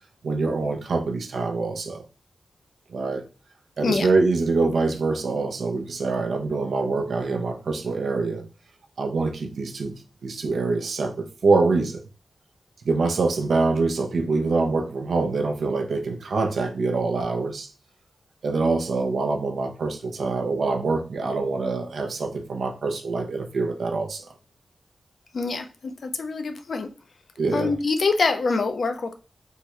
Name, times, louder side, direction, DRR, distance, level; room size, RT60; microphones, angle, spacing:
voice 1, 0.2-2.0 2.9-3.2 3.8-8.4 9.0-9.9 10.2-12.0 12.8-17.7 18.4-24.3 27.4-27.7, right 3 dB, 80° right, 0.6 m, -25 dB
voice 2, 25.3-26.9 27.5-29.1, left 4 dB, 70° left, 0.5 m, -25 dB
3.6 x 2.2 x 2.9 m
wide cardioid pair, 75°, 0 cm